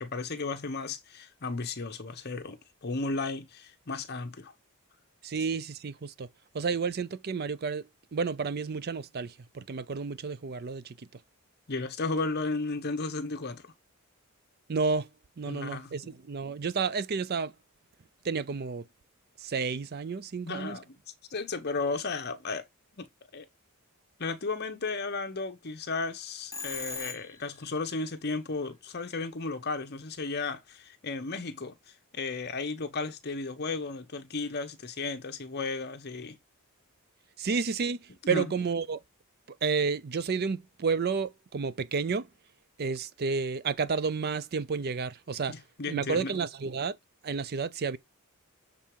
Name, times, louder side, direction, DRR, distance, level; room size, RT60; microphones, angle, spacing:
voice 1, 0.0-4.5 11.7-13.7 15.5-16.1 20.4-21.0 21.3-22.7 23.0-23.5 24.2-36.4 38.2-38.5 45.5-46.4, left 3 dB, 45° left, 0.9 m, -34 dB
voice 2, 5.2-6.3 6.5-7.9 8.1-11.0 14.7-15.1 15.4-17.5 18.2-18.9 19.4-20.8 37.4-39.0 39.6-42.3 42.8-45.5 45.9-47.0 47.2-48.0, right 5 dB, 45° right, 0.5 m, -31 dB
Telephone, 26.5-27.6, left 4 dB, 15° left, 1.1 m, -38 dB
7.3 x 3.9 x 4.7 m
head